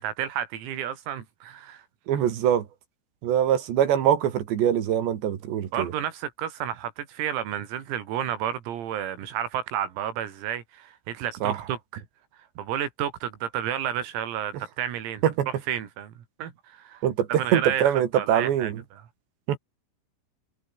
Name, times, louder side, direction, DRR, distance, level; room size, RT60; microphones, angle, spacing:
voice 1, 0.0-1.9 5.7-11.8 12.6-15.2 15.7-17.0 17.4-17.9 18.2-18.7, right 10 dB, 90° right, 5.8 m, -31 dB
voice 2, 2.1-2.7 3.2-5.9 11.4-11.7 14.5-14.7 15.2-15.5 17.0-18.8 19.5-19.6, right 10 dB, 65° right, 4.0 m, -23 dB
omnidirectional pair, 6.0 m